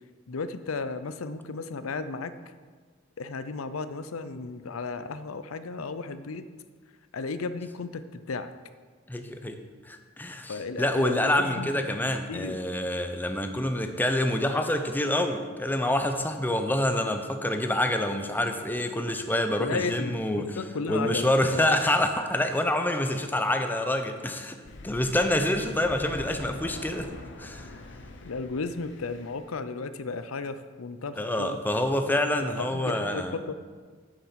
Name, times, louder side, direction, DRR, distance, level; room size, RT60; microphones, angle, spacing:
voice 1, 0.3-2.3 3.2-6.5 7.1-8.5 10.5-11.7 12.3-12.6 19.6-21.7 28.2-31.6 32.6-33.6, left 4 dB, 90° left, 11 dB, 0.6 m, -34 dB
voice 2, 9.1-9.6 9.9-20.6 20.9-24.6 24.8-27.1 27.4-27.7 31.2-33.4, left 1 dB, 10° left, 6 dB, 0.7 m, -27 dB
Thunder, 24.6-29.5, left 2 dB, 60° left, 0.9 m, -43 dB
9.0 x 7.2 x 5.8 m, 1.5 s
head